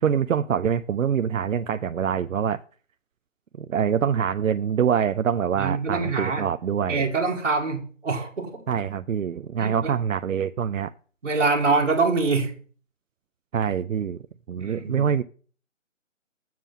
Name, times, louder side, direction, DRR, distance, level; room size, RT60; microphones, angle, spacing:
voice 1, 0.0-2.6 3.6-7.1 8.7-10.9 13.5-14.2 14.5-15.2, right 8 dB, 85° right, 0.6 m, -25 dB
voice 2, 5.6-6.5 6.9-8.6 9.6-9.9 11.2-12.5 14.6-15.0, right 4 dB, 55° right, 2.0 m, -24 dB
7.5 x 7.4 x 5.5 m
hypercardioid pair, 175°, 39 cm